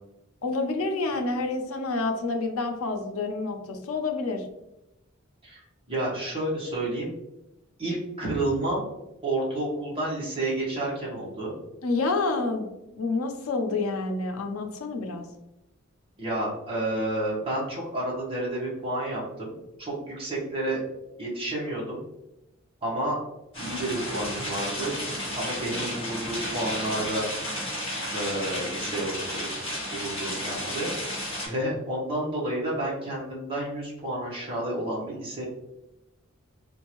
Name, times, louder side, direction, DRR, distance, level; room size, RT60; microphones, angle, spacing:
voice 1, 0.4-4.5 11.8-12.7 12.9-15.3, left 3 dB, 90° left, 5 dB, 0.6 m, -28 dB
voice 2, 5.9-7.1 7.8-8.9 9.2-11.6 16.2-20.8 21.2-22.0 22.8-23.2 23.6-24.9 25.3-27.3 28.1-29.5 29.8-30.9 31.4-35.4, right 1 dB, 25° right, -6 dB, 1.1 m, -30 dB
sound 1, 23.5-31.5, equal, 25° left, 1.3 m, -32 dB
3.7 x 2.6 x 2.9 m, 0.92 s
head